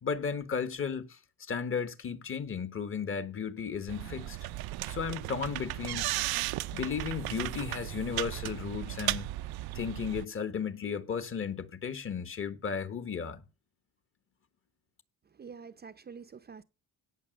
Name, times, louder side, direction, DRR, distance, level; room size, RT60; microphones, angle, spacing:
voice 1, 0.0-1.2 1.5-4.4 4.9-6.0 6.7-9.3 9.7-13.4, left 6 dB, 35° left, 1.4 m, -34 dB
sound 1, 3.9-10.2, right 17 dB, 85° right, 0.7 m, -35 dB
voice 2, 15.3-16.6, right 6 dB, 25° right, 0.6 m, -47 dB
17.0 x 6.7 x 6.5 m
cardioid pair, 145°, 36 cm